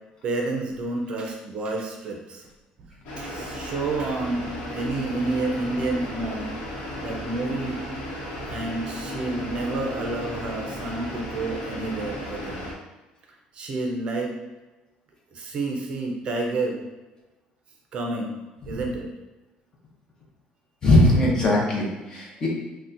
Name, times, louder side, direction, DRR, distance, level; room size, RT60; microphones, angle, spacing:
voice 1, 0.2-2.5 3.2-6.6 7.0-7.8 8.5-12.7 13.5-14.3 15.3-16.8 17.9-18.3 18.6-19.1, right 2 dB, 40° right, 1 dB, 0.5 m, -29 dB
sound 1, 3.0-12.7, equal, 90° left, 0.9 m, -35 dB
voice 2, 20.8-22.5, left 1 dB, 30° left, -2 dB, 0.7 m, -19 dB
4.0 x 2.1 x 2.5 m, 1.2 s
cardioid pair, 150°, 3 cm